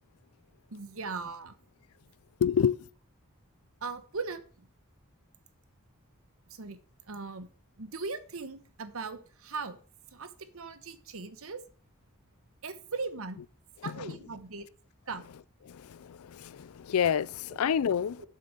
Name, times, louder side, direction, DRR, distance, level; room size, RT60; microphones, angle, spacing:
voice 1, 0.7-1.5 3.8-4.7 6.5-6.8 7.1-7.5 7.8-9.8 10.1-11.6 12.6-13.4 13.8-14.6 15.1-15.3 18.2-18.3, right 4 dB, 70° right, 1.1 m, -39 dB
voice 2, 2.4-2.8 13.8-14.1 15.7-18.3, left 7 dB, 75° left, 0.4 m, -28 dB
7.8 x 6.8 x 6.6 m
head